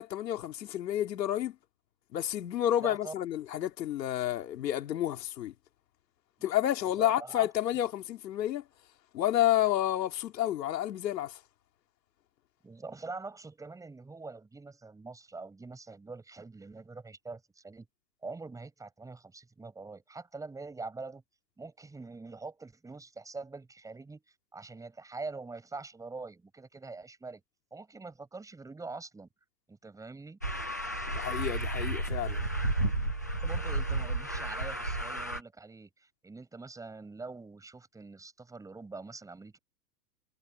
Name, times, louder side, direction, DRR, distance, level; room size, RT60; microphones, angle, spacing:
voice 1, 0.0-1.5 2.1-5.5 6.4-8.6 9.1-11.4 31.1-32.4, left 12 dB, 75° left, 3.5 m, -30 dB
voice 2, 2.8-3.1 6.8-7.5 12.6-17.9 18.2-21.2 21.6-24.2 24.5-27.4 27.7-29.3 29.7-30.4 33.4-39.6, right 3 dB, 5° right, 7.6 m, -44 dB
sound 1, 30.4-35.4, right 2 dB, 15° left, 0.3 m, -32 dB
supercardioid pair, 160°, 50 cm